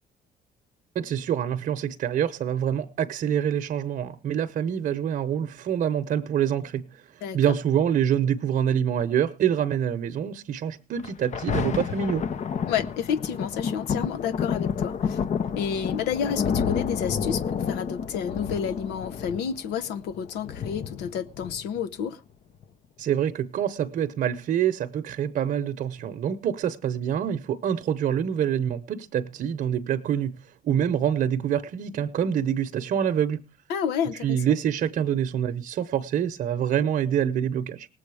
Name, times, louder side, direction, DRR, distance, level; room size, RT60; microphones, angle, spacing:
voice 1, 0.9-7.0 7.3-12.3 23.0-30.4 30.6-33.4 34.2-37.9, right 9 dB, 55° right, 0.9 m, -26 dB
Thunder, 11.0-22.0 22.6-22.7, left 7 dB, 45° left, 0.8 m, -30 dB
voice 2, 12.7-15.2 15.5-22.2 33.7-34.4, left 8 dB, 90° left, 1.0 m, -30 dB
18.5 x 7.7 x 4.8 m
cardioid pair, 110°, 17 cm